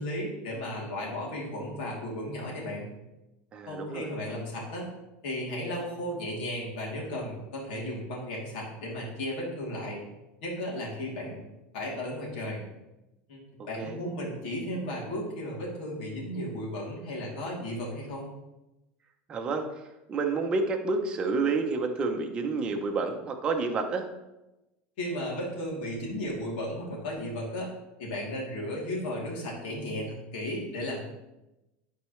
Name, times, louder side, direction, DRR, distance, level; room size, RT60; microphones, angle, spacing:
voice 1, 0.0-2.9 3.6-4.9 5.2-10.0 10.4-11.4 11.7-12.6 13.3-13.4 13.7-18.3 25.0-27.7 28.0-31.0, left 1 dB, 80° left, -4 dB, 3.0 m, -34 dB
voice 2, 3.5-4.1 13.8-14.0 19.3-19.7 20.1-24.0, right 4 dB, 20° right, 3 dB, 0.7 m, -29 dB
11.5 x 4.6 x 3.2 m, 0.98 s
supercardioid pair, 175°, 5 cm